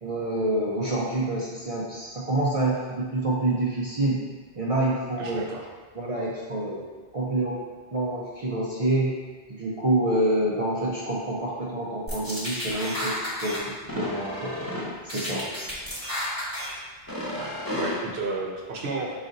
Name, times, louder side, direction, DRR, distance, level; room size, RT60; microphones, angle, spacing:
voice 1, 0.0-4.2 4.6-5.4 5.9-6.8 7.1-7.6 7.9-9.1 9.5-14.6 15.0-15.5, right 1 dB, 40° right, -6 dB, 0.5 m, -27 dB
voice 2, 5.2-5.7 17.3-19.1, right 3 dB, 70° right, 0 dB, 1.0 m, -33 dB
sound 1, 12.1-13.6 13.9-14.8 15.1-16.7 17.1-17.9, equal, 15° left, 1.0 m, -31 dB
5.0 x 2.7 x 3.9 m, 1.4 s
omnidirectional pair, 1.1 m